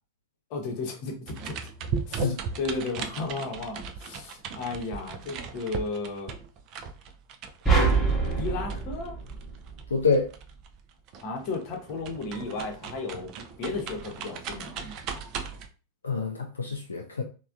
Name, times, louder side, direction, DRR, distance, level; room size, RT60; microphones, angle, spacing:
voice 1, 0.5-1.6 2.1-6.3 8.4-9.2 11.2-13.3 13.6-15.0, left 3 dB, 45° left, 0.8 m, -34 dB
sound 1, 1.3-10.8 11.1-15.7, right 6 dB, 40° right, 0.3 m, -37 dB
sound 2, 7.6-10.1, right 4 dB, 5° left, 0.9 m, -25 dB
voice 2, 9.9-10.3 16.0-17.2, left 4 dB, 75° left, 0.3 m, -26 dB
3.2 x 2.2 x 2.4 m
figure-of-eight pair, 90°, 0 cm